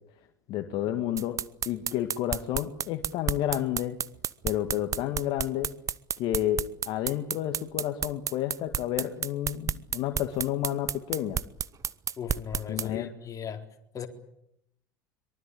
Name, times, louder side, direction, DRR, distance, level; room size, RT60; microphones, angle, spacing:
voice 1, 0.5-1.4 1.7-4.0 4.4-5.7 6.2-11.4 12.7-13.1, left 12 dB, 50° left, 6 dB, 2.1 m, -30 dB
sound 1, 1.2-12.9, right 8 dB, 30° right, 0.9 m, -31 dB
voice 2, 12.2-13.6 13.9-14.1, left 8 dB, 30° left, 4 dB, 4.2 m, -37 dB
24.0 x 23.5 x 8.6 m, 0.77 s
figure-of-eight pair, 75°, 11 cm